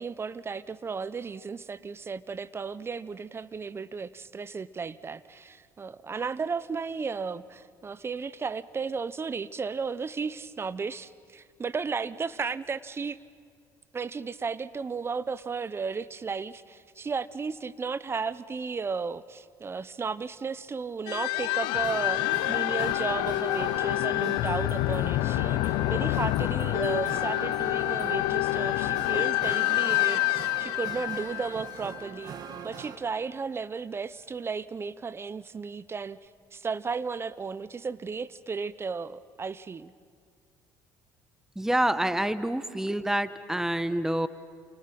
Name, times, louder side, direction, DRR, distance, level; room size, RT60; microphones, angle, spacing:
voice 1, 0.0-13.2 13.9-32.4 32.6-36.2 36.5-39.9, right 5 dB, 30° right, 17 dB, 0.9 m, -34 dB
sound 1, 21.1-32.3, left 18 dB, 80° left, 0.6 m, -27 dB
sound 2, 21.8-33.0, right 7 dB, 60° right, 1.8 m, -43 dB
voice 2, 41.5-44.3, right 1 dB, 5° right, 13 dB, 1.2 m, -27 dB
29.0 x 28.5 x 6.1 m, 2.2 s
supercardioid pair, 75°, 8 cm